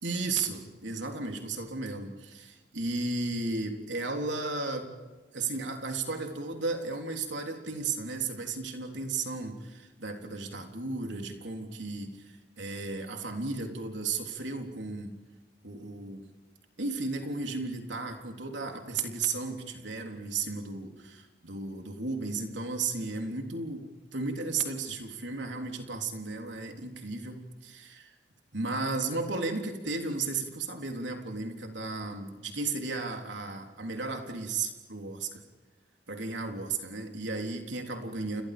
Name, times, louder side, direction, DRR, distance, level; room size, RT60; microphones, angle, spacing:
voice 1, 0.0-4.9 5.3-15.2 15.6-16.3 16.8-28.1 28.5-35.4 36.1-38.4, right 3 dB, 85° right, 3 dB, 3.6 m, -34 dB
29.5 x 29.5 x 5.2 m, 1.3 s
head